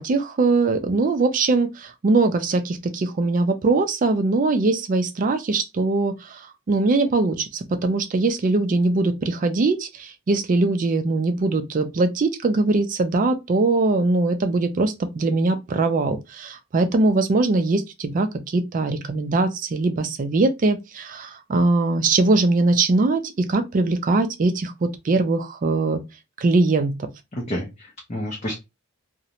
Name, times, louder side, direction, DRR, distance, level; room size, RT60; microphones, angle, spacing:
voice 1, 0.0-6.4 6.7-26.0 26.4-27.1, right 3 dB, 35° right, 0.3 m, -21 dB
voice 2, 27.3-28.5, equal, 30° left, 0.5 m, -30 dB
2.5 x 2.0 x 2.8 m
head